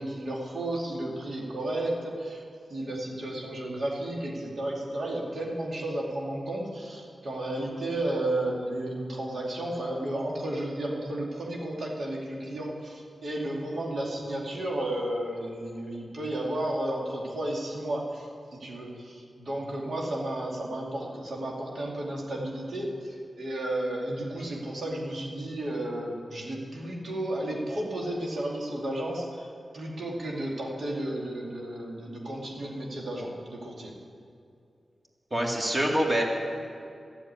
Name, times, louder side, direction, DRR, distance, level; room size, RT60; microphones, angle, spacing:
voice 1, 0.0-2.4 2.7-29.5 29.7-33.9, right 1 dB, 75° right, -2 dB, 2.6 m, -33 dB
voice 2, 35.3-36.2, right 1 dB, 30° right, -1 dB, 2.4 m, -25 dB
13.5 x 7.1 x 9.6 m, 2.5 s
cardioid pair, 70°, 0 cm